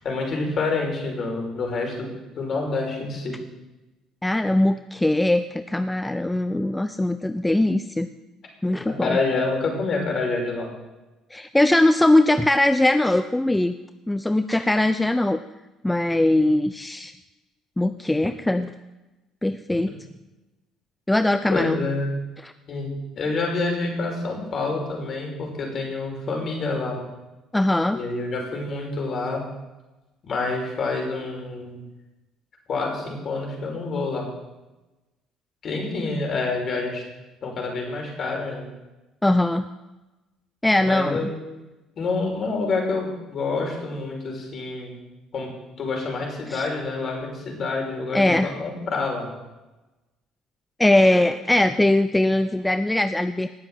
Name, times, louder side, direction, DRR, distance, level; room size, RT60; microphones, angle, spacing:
voice 1, 0.0-2.1 2.4-3.4 8.8-10.7 21.5-22.1 22.7-22.9 23.2-27.0 27.9-29.4 30.2-31.8 32.7-34.3 35.6-37.0 37.4-38.7 40.8-41.3 42.0-45.0 45.3-45.5 45.8-48.3 48.6-49.3, left 3 dB, 50° left, 1 dB, 5.9 m, -27 dB
voice 2, 4.2-8.1 8.6-9.2 11.3-13.7 14.1-15.4 15.8-17.1 17.8-18.7 19.4-19.9 21.1-21.8 22.4-22.5 27.5-28.0 39.2-39.7 40.6-41.3 46.5-46.7 48.1-48.5 50.8-53.5, left 1 dB, 10° left, 10 dB, 0.8 m, -21 dB
19.0 x 7.6 x 7.6 m, 1.1 s
hypercardioid pair, 55°, 0 cm